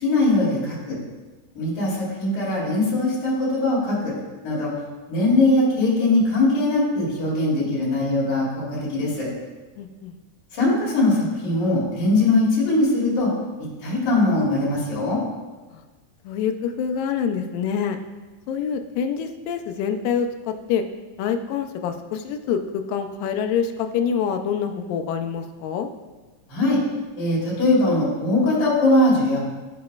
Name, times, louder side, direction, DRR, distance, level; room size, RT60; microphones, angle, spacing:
voice 1, 0.0-1.0 1.6-4.1 4.4-4.7 5.1-9.3 10.5-13.3 13.6-15.2 26.5-26.8 27.2-29.4, left 2 dB, 65° left, -7 dB, 3.7 m, -21 dB
voice 2, 9.8-10.2 15.7-15.8 16.2-18.0 18.5-20.8 21.2-25.9, left 7 dB, 85° left, 6 dB, 2.3 m, -26 dB
14.0 x 4.7 x 2.3 m, 1.3 s
omnidirectional pair, 3.8 m